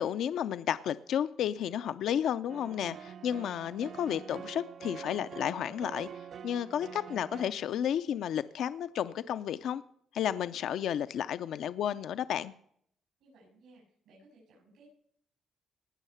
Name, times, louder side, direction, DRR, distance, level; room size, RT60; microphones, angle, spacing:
voice 1, 0.0-6.1 6.4-9.8 10.1-12.5, left 9 dB, 70° left, 13 dB, 0.4 m, -32 dB
sound 1, 2.5-7.5, right 7 dB, 50° right, 0.4 m, -45 dB
voice 2, 13.2-14.9, right 2 dB, 85° right, -4 dB, 7.3 m, -60 dB
19.0 x 6.5 x 5.6 m, 0.66 s
cardioid pair, 110°, 0 cm